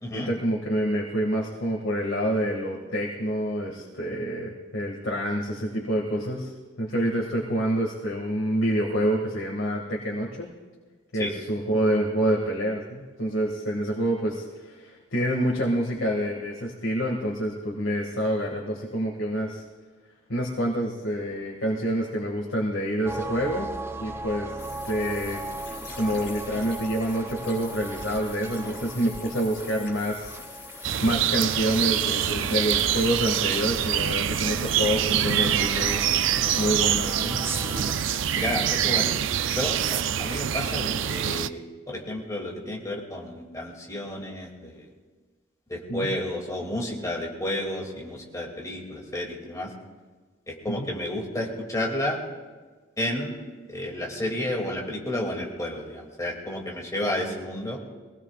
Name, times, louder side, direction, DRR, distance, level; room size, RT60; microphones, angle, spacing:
voice 1, 0.1-6.5 6.8-10.5 11.1-19.6 20.3-23.7 24.0-24.6 24.9-25.4 26.0-30.4 30.7-37.5 45.9-46.1 50.7-50.9, equal, 75° left, -3 dB, 2.1 m, -27 dB
sound 1, 23.0-37.9, right 2 dB, 10° right, 0.4 m, -38 dB
sound 2, 24.6-39.1, left 4 dB, 60° left, 5.3 m, -43 dB
sound 3, 30.8-41.5, right 10 dB, 70° right, 0.4 m, -25 dB
voice 2, 38.3-39.1 39.5-44.9 45.7-49.7 50.5-52.2 53.0-53.4 53.7-57.8, left 1 dB, 15° left, -1 dB, 2.6 m, -31 dB
23.5 x 18.0 x 2.5 m, 1.4 s
head